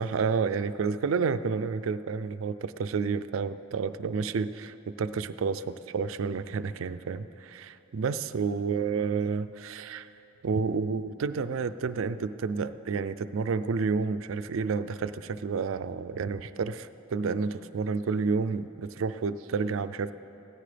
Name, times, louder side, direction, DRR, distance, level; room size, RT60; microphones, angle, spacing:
voice 1, 0.0-10.1 10.4-20.1, right 5 dB, 75° right, 12 dB, 0.4 m, -30 dB
16.5 x 13.5 x 3.4 m, 3.0 s
head